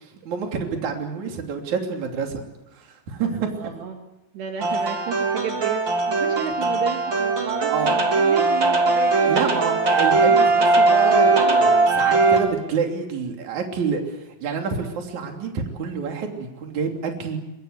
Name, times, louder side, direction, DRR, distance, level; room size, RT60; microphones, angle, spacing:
voice 1, 0.3-2.4 2.7-3.3 7.7-8.0 9.3-17.4, right 5 dB, 45° right, 3 dB, 4.0 m, -28 dB
voice 2, 3.2-4.0 4.3-5.8 6.1-9.5, right 7 dB, 70° right, 4 dB, 3.8 m, -32 dB
sound 1, 4.6-12.4, right 3 dB, 30° right, 3.4 m, -19 dB
23.5 x 23.0 x 8.1 m, 0.94 s
omnidirectional pair, 5.3 m